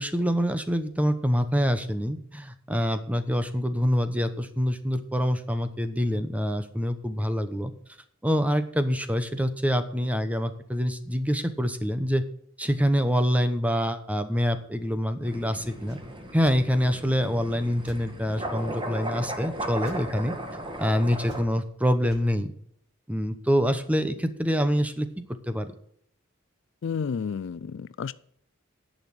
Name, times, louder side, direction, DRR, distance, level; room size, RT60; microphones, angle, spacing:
voice 1, 0.0-7.7 8.2-12.2 12.6-16.0 16.3-20.4 20.8-22.5 23.1-25.1 25.5-25.7, equal, 5° right, 9 dB, 0.9 m, -26 dB
sound 1, 15.2-21.4, right 1 dB, 25° right, 1.7 m, -36 dB
sound 2, 15.8-16.0 16.4-16.6 17.8-18.0 19.8-20.0 21.2-21.7 22.0-22.2, right 1 dB, 55° right, 2.0 m, -47 dB
voice 2, 26.8-28.1, left 6 dB, 60° left, 18 dB, 0.4 m, -31 dB
10.5 x 6.4 x 7.8 m, 0.65 s
head